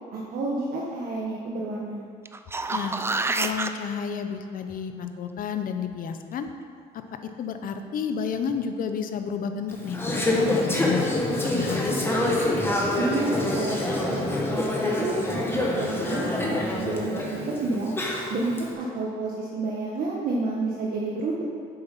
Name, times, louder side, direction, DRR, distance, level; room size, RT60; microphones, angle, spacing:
voice 1, 0.1-2.1 13.0-17.9 18.3-21.4, right 3 dB, 60° right, -4 dB, 1.3 m, -30 dB
sound 1, 2.3-3.7 8.5-8.6, right 3 dB, 15° right, 0.4 m, -27 dB
voice 2, 3.4-6.5 7.4-10.0 10.3-11.1 11.4-12.1, left 7 dB, 55° left, 7 dB, 0.8 m, -31 dB
Conversation / Chatter, 9.7-18.6, left 1 dB, 15° left, 1.5 m, -26 dB
8.0 x 7.1 x 5.5 m, 2.4 s
cardioid pair, 110°, 17 cm